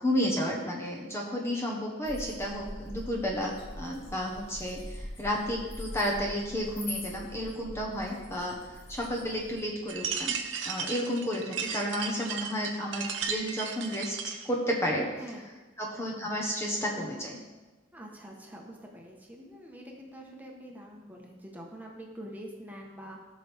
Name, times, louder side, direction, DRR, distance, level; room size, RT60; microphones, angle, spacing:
voice 1, 0.0-10.4 10.6-15.1 15.8-17.4, equal, 15° left, -2 dB, 1.2 m, -32 dB
sound 1, 2.0-9.6, left 1 dB, 55° left, 2.7 m, -43 dB
sound 2, 9.9-14.5, right 6 dB, 70° right, 0.9 m, -35 dB
voice 2, 17.9-23.2, equal, 10° right, -1 dB, 1.3 m, -45 dB
16.0 x 6.2 x 3.6 m, 1.2 s
head